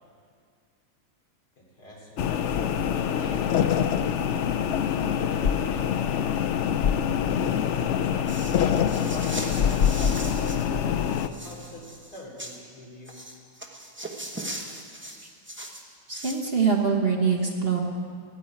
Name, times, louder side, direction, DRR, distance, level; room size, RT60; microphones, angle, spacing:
voice 1, 1.6-3.7 4.7-6.0 7.2-13.2, equal, 65° left, -4 dB, 3.5 m, -44 dB
sound 1, 2.2-11.3, left 8 dB, 85° left, 0.6 m, -25 dB
sound 2, 8.3-10.7 11.0-12.6 13.1-16.5, right 1 dB, 10° right, 0.8 m, -39 dB
voice 2, 16.1-17.8, right 5 dB, 40° right, 1 dB, 1.2 m, -24 dB
13.0 x 9.6 x 9.4 m, 2.2 s
omnidirectional pair, 1.9 m